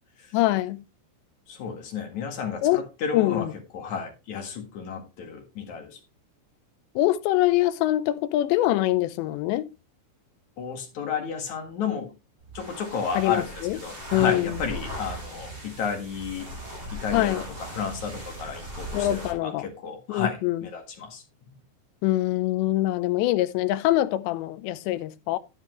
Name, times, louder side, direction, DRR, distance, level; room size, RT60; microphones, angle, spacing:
voice 1, 0.3-0.8 2.6-2.8 3.1-3.5 7.0-9.7 13.2-13.8 14.1-14.6 17.1-17.4 18.9-19.7 20.1-20.6 22.0-25.4, left 15 dB, 80° left, 2.7 m, -24 dB
voice 2, 1.5-3.5 3.7-6.0 10.6-12.1 12.5-16.5 16.9-21.2, left 6 dB, 50° left, 2.5 m, -32 dB
sound 1, 12.4-19.4, right 1 dB, 30° right, 7.3 m, -38 dB
10.5 x 10.0 x 3.1 m
omnidirectional pair, 5.4 m